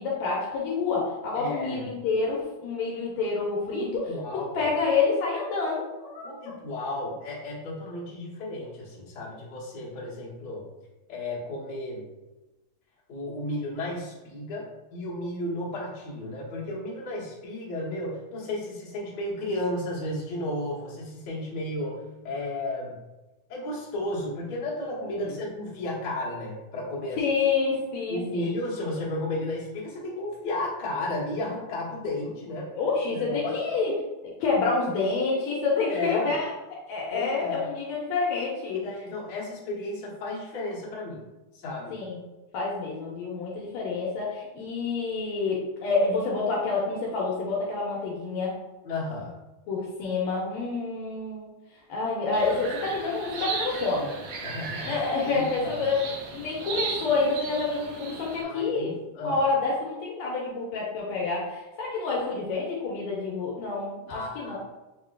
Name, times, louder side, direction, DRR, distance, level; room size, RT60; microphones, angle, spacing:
voice 1, 0.0-3.9 4.6-6.3 25.2-25.3 27.2-28.5 32.8-33.9 34.2-36.5 36.9-38.8 41.9-42.2 42.5-48.6 49.7-51.5 51.9-54.1 54.8-56.1 56.3-58.9 59.2-64.6, left 4 dB, 75° left, -3 dB, 1.9 m, -28 dB
voice 2, 1.4-1.9 3.7-4.7 6.2-10.7 11.1-12.0 13.1-23.0 23.5-27.2 28.1-32.7 33.1-33.5 35.9-36.3 37.1-37.7 38.7-41.2 41.5-42.0 48.8-49.4 54.4-55.9 58.4-59.4 64.1-64.6, left 1 dB, 50° left, -6 dB, 1.3 m, -33 dB
sound 1, 52.3-58.4, right 4 dB, 75° right, 1.8 m, -36 dB
6.8 x 2.9 x 2.3 m, 1.1 s
omnidirectional pair, 3.5 m